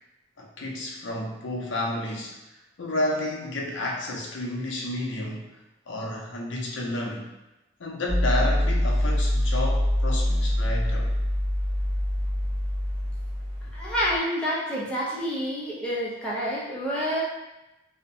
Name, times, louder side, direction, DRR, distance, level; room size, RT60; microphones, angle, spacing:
voice 1, 0.4-2.4 2.8-5.5 5.9-7.3 7.8-11.1, left 1 dB, 70° left, -1 dB, 0.5 m, -31 dB
sound 1, 8.1-14.2, left 1 dB, 55° right, 0.9 m, -25 dB
voice 2, 13.7-17.2, equal, 5° left, -8 dB, 0.5 m, -28 dB
2.6 x 2.1 x 2.6 m, 0.98 s
head